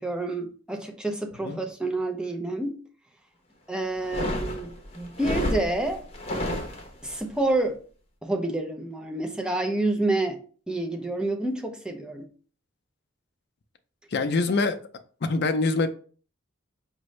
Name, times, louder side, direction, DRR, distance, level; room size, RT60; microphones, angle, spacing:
voice 1, 0.0-2.8 3.7-6.0 7.0-7.8 8.2-10.4 10.7-12.3, right 2 dB, 5° right, 0.6 m, -28 dB
sound 1, 4.0-7.2, left 1 dB, 30° left, 0.9 m, -31 dB
voice 2, 14.1-14.8 15.2-15.9, left 3 dB, 60° left, 0.5 m, -24 dB
5.1 x 2.7 x 3.2 m
head